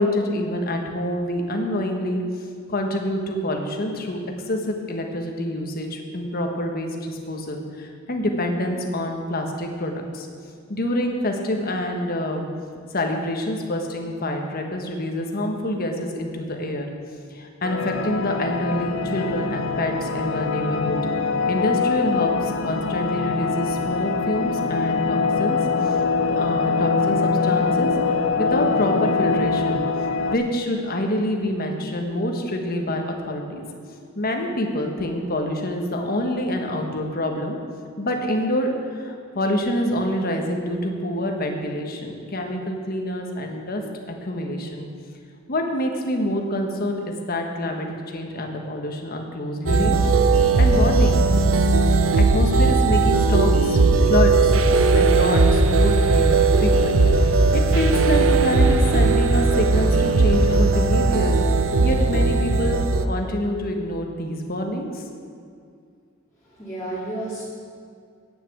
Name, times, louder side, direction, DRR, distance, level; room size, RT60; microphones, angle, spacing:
voice 1, 0.0-2.2 2.7-4.2 4.5-10.3 10.7-12.5 12.9-16.9 17.3-21.0 21.5-25.6 25.9-26.0 26.3-29.8 30.3-33.6 34.1-37.6 38.0-43.8 44.1-44.9 45.5-50.0 50.6-51.2 52.1-53.8 54.1-54.6 54.9-57.0 57.5-61.4 61.8-65.0, left 1 dB, 50° left, 3 dB, 1.3 m, -26 dB
sound 1, 17.6-30.4, left 4 dB, 70° left, 0.6 m, -23 dB
sound 2, 49.7-63.1, right 3 dB, 80° right, 0.6 m, -18 dB
voice 2, 66.4-67.4, right 1 dB, 15° left, -8 dB, 2.1 m, -31 dB
8.7 x 7.7 x 8.3 m, 2.2 s
head